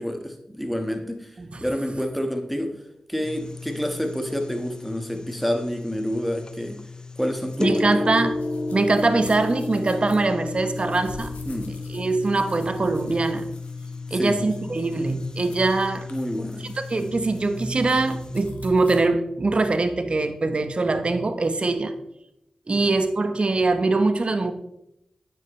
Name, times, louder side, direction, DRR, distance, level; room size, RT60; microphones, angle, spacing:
voice 1, 0.0-2.8 3.1-6.8 7.2-8.0 11.4-11.8 14.1-14.4 16.1-16.6 22.7-22.9, equal, ahead, 5 dB, 1.5 m, -28 dB
sound 1, 3.2-18.5, left 2 dB, 30° left, 0.6 m, -33 dB
sound 2, 7.5-19.0, left 2 dB, 85° left, 1.5 m, -48 dB
voice 2, 7.6-8.4 8.7-11.3 11.9-13.5 14.1-16.1 16.9-22.0 22.7-24.5, right 3 dB, 45° right, 9 dB, 1.0 m, -23 dB
9.2 x 7.4 x 3.2 m, 0.81 s
cardioid pair, 45°, 2 cm